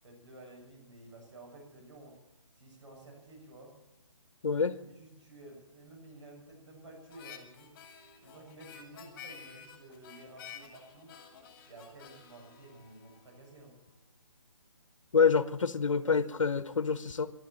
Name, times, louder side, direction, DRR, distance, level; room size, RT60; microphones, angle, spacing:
voice 1, 0.0-2.2 2.6-3.8 4.9-7.8 8.2-11.2 11.7-13.8, right 2 dB, 65° right, 6.9 m, -52 dB
voice 2, 4.4-4.7 15.1-17.3, left 5 dB, 70° left, 1.0 m, -27 dB
Harmonica, 7.1-13.6, left 8 dB, 25° left, 2.8 m, -51 dB
13.0 x 12.0 x 9.0 m
figure-of-eight pair, 155°, 17 cm